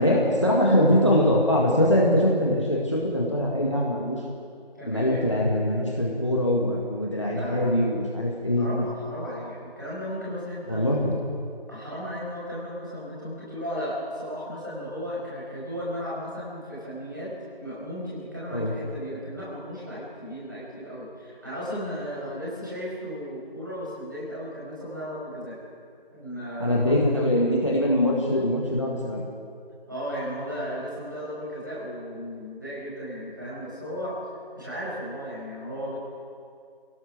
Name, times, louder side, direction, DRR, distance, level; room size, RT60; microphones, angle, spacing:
voice 1, 0.0-4.2 4.8-8.7 10.7-11.2 18.5-18.7 26.6-29.2, left 1 dB, 30° left, -2 dB, 2.0 m, -23 dB
voice 2, 4.8-5.2 7.3-7.9 8.6-10.8 11.7-17.3 17.6-25.6 26.1-26.9 29.9-34.2 34.5-36.0, equal, 20° right, -7 dB, 5.4 m, -35 dB
26.0 x 17.5 x 6.2 m, 2.3 s
figure-of-eight pair, 175°, 30 cm